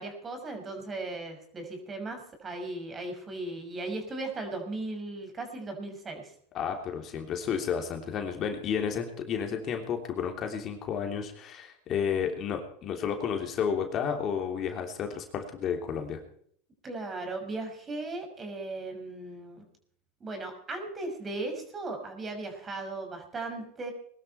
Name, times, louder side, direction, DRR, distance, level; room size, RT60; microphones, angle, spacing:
voice 1, 0.0-6.3 9.5-9.6 16.8-19.6 20.2-23.9, right 2 dB, 25° right, 5 dB, 5.9 m, -37 dB
voice 2, 6.5-16.2, left 7 dB, 40° left, 4 dB, 3.2 m, -31 dB
21.5 x 12.5 x 4.5 m, 0.62 s
hypercardioid pair, 105°, 0 cm